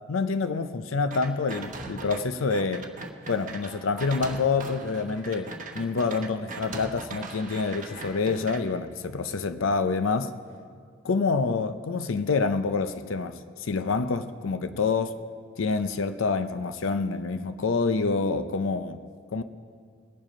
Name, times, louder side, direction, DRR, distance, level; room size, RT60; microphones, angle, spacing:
voice 1, 0.1-2.9 3.3-10.3 11.0-15.2 15.6-19.0 19.3-19.4, left 4 dB, 85° left, 0.6 m, -27 dB
sound 1, 1.1-2.2 2.5-8.6, right 3 dB, 40° right, 1.0 m, -39 dB
21.0 x 7.4 x 5.2 m
head